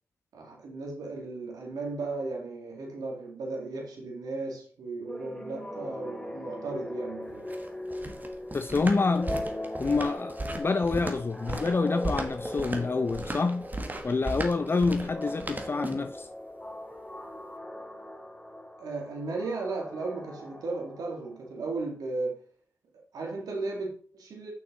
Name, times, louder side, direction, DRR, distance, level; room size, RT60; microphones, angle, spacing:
voice 1, 0.3-7.5 18.8-22.4 23.1-24.5, right 3 dB, 70° right, 2.2 m, -35 dB
sound 1, 5.1-21.5, left 1 dB, 10° left, 2.1 m, -40 dB
sound 2, 7.3-16.2, right 2 dB, 25° right, 1.5 m, -36 dB
voice 2, 8.5-9.3 9.8-13.7 14.0-16.3, left 4 dB, 35° left, 0.5 m, -27 dB
6.2 x 6.1 x 3.9 m
supercardioid pair, 40°, 7 cm